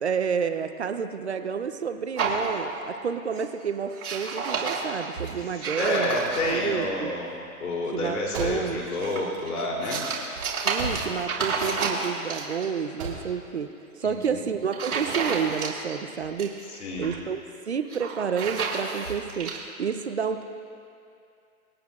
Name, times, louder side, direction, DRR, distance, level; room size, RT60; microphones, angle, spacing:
voice 1, 0.0-6.2 6.5-7.1 7.9-8.8 10.6-13.7 14.0-16.5 17.0-17.4 17.7-20.4, right 6 dB, 50° right, 9 dB, 0.6 m, -29 dB
sound 1, 2.2-3.0 3.3-3.6 3.9-6.8 8.6-12.7 14.0-14.3 14.7-16.0 16.2-17.2 17.8-19.6, right 4 dB, 75° right, 3.5 m, -31 dB
voice 2, 5.4-7.3 7.6-10.0 14.0-14.4 16.8-17.2, left 1 dB, 75° left, -2 dB, 3.1 m, -29 dB
sound 2, 6.2-11.4 11.7-12.4 12.8-13.4, right 2 dB, 20° right, 1.8 m, -38 dB
26.5 x 9.4 x 2.4 m, 2.4 s
hypercardioid pair, 175°, 44 cm